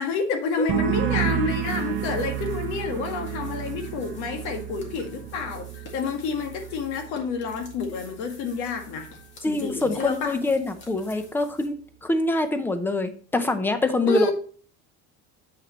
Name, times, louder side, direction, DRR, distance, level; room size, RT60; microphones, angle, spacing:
voice 1, 0.0-5.7 5.9-9.1 9.4-10.4 14.1-14.3, left 5 dB, 70° left, 1.7 m, -29 dB
sound 1, 0.7-8.1 8.4-9.0, right 11 dB, 45° right, 0.8 m, -31 dB
sound 2, 1.3-11.7, left 3 dB, 40° left, 2.0 m, -50 dB
voice 2, 9.4-14.3, left 2 dB, 5° left, 0.6 m, -25 dB
7.7 x 6.3 x 3.0 m
cardioid pair, 165°, 29 cm